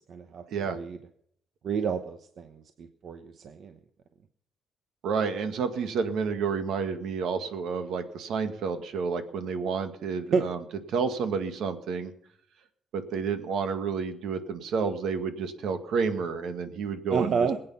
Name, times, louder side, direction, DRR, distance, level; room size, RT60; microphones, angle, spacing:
voice 1, 0.1-1.0 1.6-3.7 10.3-10.5 17.1-17.6, right 5 dB, 50° right, 7 dB, 1.0 m, -30 dB
voice 2, 5.0-10.6 10.9-12.1 12.9-17.5, right 5 dB, 70° right, 8 dB, 1.9 m, -30 dB
21.5 x 8.9 x 5.6 m, 0.67 s
cardioid pair, 155°, 0 cm